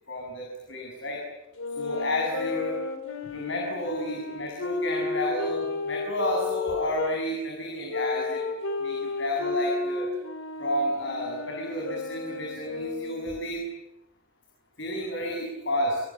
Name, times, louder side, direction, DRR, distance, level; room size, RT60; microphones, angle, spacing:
voice 1, 0.1-1.2 1.8-2.8 3.3-8.4 8.8-10.1 10.6-13.7 14.8-16.0, equal, 65° left, 1 dB, 7.6 m, -31 dB
sound 1, 1.6-7.2 7.9-13.4, left 4 dB, 90° left, 3.9 m, -32 dB
29.0 x 26.0 x 7.7 m, 0.89 s
head